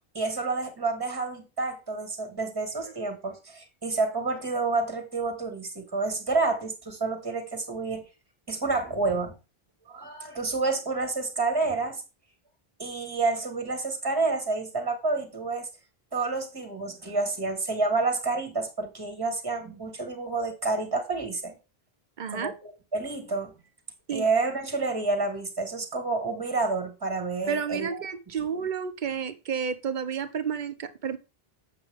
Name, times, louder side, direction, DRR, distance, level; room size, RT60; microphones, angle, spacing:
voice 1, 0.1-8.1 8.5-9.3 9.9-12.0 12.8-15.7 16.1-21.5 22.3-23.5 24.1-27.9, right 3 dB, 25° right, 1.6 m, -29 dB
voice 2, 22.2-22.5 24.1-24.2 27.5-31.2, right 7 dB, 50° right, 0.9 m, -31 dB
8.1 x 6.6 x 3.5 m
omnidirectional pair, 1.0 m